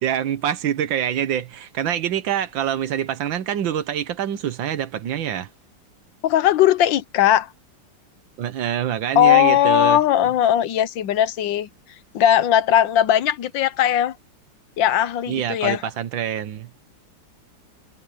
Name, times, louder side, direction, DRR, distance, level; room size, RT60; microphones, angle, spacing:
voice 1, 0.0-5.5 8.4-10.0 15.3-16.9, right 10 dB, 85° right, 1.8 m, -25 dB
voice 2, 6.2-7.5 9.2-11.7 12.1-14.1 14.8-15.8, left 11 dB, 80° left, 1.6 m, -18 dB
omnidirectional pair, 2.0 m